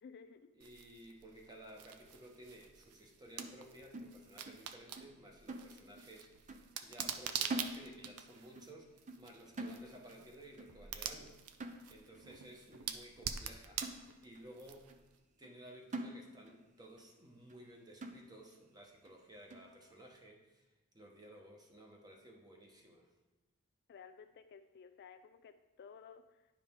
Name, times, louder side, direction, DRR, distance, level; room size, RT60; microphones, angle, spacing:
voice 1, 0.0-0.5 23.9-26.5, left 6 dB, 50° left, 8 dB, 0.4 m, -55 dB
voice 2, 0.6-6.3 6.8-11.4 11.9-13.8 14.2-14.8 15.4-20.7 20.9-23.1, right 1 dB, 20° right, 0 dB, 1.0 m, -56 dB
sound 1, 0.6-15.2, right 8 dB, 85° right, 0.5 m, -46 dB
Trash Can Tap, 3.4-4.7 5.0-5.2 5.5-6.2 6.5-6.7 7.0-8.3 8.6-8.8 9.1-10.3 10.6-10.8 11.1-11.3 11.6-12.2 12.7-12.8 13.3-13.4 13.8-14.5 14.9-15.0 15.4-15.6 15.9-16.7 17.0-17.1 17.5-17.6 18.0-18.6 19.1-19.2 19.5-19.7, right 2 dB, 35° right, 0.5 m, -46 dB
10.5 x 4.9 x 3.6 m, 1.1 s
head